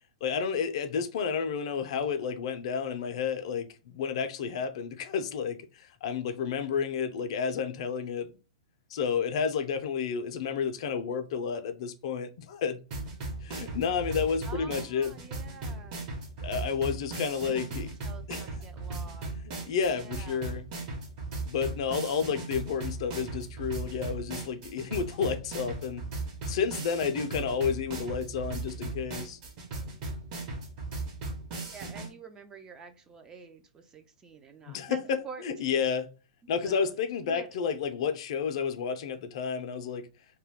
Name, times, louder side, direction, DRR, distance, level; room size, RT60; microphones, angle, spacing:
voice 1, 0.2-8.3 8.9-12.8 13.4-15.2 16.4-17.9 18.3-18.5 19.7-20.6 21.4-26.1 26.5-29.4 34.7-36.1 36.5-40.1, left 6 dB, 60° left, 0.4 m, -31 dB
sound 1, 12.9-32.1, right 3 dB, 40° right, 0.9 m, -37 dB
voice 2, 14.4-16.1 17.4-19.3 19.8-20.6 31.6-35.0 35.2-35.9 36.6-36.9 37.2-37.5, right 5 dB, 20° right, 0.4 m, -48 dB
2.2 x 2.2 x 3.4 m
hypercardioid pair, 130°, 4 cm